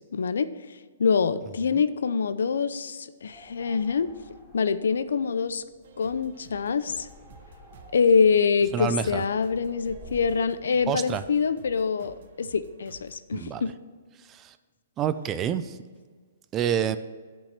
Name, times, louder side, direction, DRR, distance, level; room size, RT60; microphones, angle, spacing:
voice 1, 0.1-0.5 1.0-4.1 4.5-5.6 6.0-7.1 7.9-13.7, left 5 dB, 80° left, 13 dB, 0.5 m, -25 dB
sound 1, 3.2-10.5, right 1 dB, 5° left, 3.0 m, -52 dB
sound 2, 5.8-13.2, right 4 dB, 55° right, 0.9 m, -52 dB
voice 2, 8.7-9.2 10.9-11.2 13.3-13.6 14.3-14.5 15.0-15.8 16.5-17.0, right 8 dB, 20° right, 12 dB, 0.4 m, -27 dB
8.8 x 5.4 x 5.9 m, 1.5 s
hypercardioid pair, 150°, 0 cm